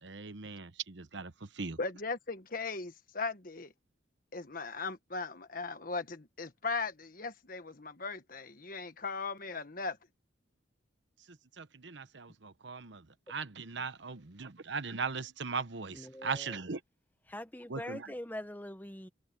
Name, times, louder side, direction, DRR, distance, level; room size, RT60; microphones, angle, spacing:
voice 1, 0.0-1.8 11.6-13.0 13.3-16.8 17.7-18.1, right 5 dB, 70° right, 1.1 m, -39 dB
voice 2, 1.8-3.7 4.3-10.0, left 4 dB, 45° left, 1.5 m, -38 dB
voice 3, 15.9-16.6 17.3-19.1, left 1 dB, 10° left, 1.0 m, -43 dB
head